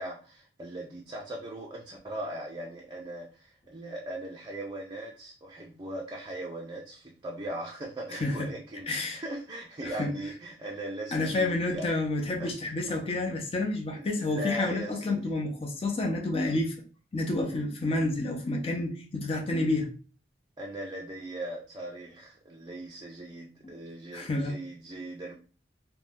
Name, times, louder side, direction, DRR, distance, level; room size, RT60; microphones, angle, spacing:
voice 1, 0.0-11.9 12.4-12.5 12.9-13.0 14.0-15.4 17.5-17.7 20.6-25.4, right 1 dB, 25° right, 0.4 m, -39 dB
voice 2, 8.9-9.2 9.8-10.1 11.1-16.7 17.1-19.9 24.1-24.5, left 2 dB, 35° left, 0.5 m, -29 dB
2.6 x 2.1 x 3.4 m
head